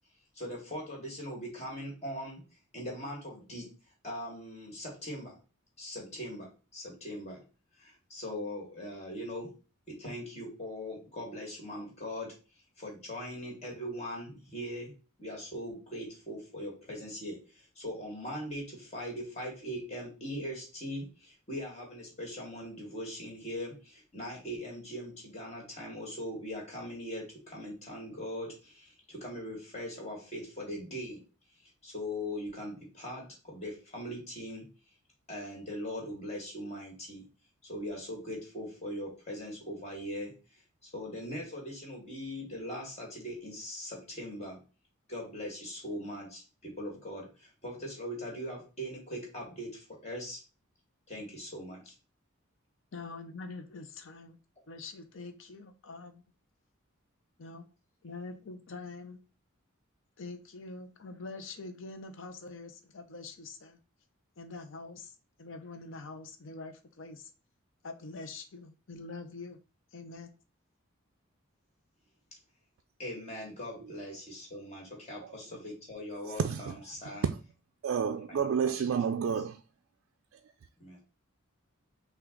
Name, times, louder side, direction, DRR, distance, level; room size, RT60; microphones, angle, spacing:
voice 1, 0.3-2.4 2.7-3.7 4.0-5.4 5.8-7.4 7.8-9.5 9.9-12.4 12.8-14.9 15.2-31.2 31.8-34.7 35.3-37.3 37.6-40.4 40.9-44.6 45.1-50.4 51.1-51.9 73.0-77.2 78.0-78.5 80.8-81.0, equal, 30° left, 1.8 m, -40 dB
voice 2, 52.9-54.4 54.7-56.2 57.4-57.7 58.0-59.2 60.2-63.8 64.4-67.3 67.8-69.6 69.9-70.3, left 3 dB, 65° left, 0.6 m, -45 dB
voice 3, 76.2-76.7 77.2-77.3 77.8-79.6, right 7 dB, 70° right, 0.3 m, -30 dB
5.8 x 2.4 x 3.8 m
head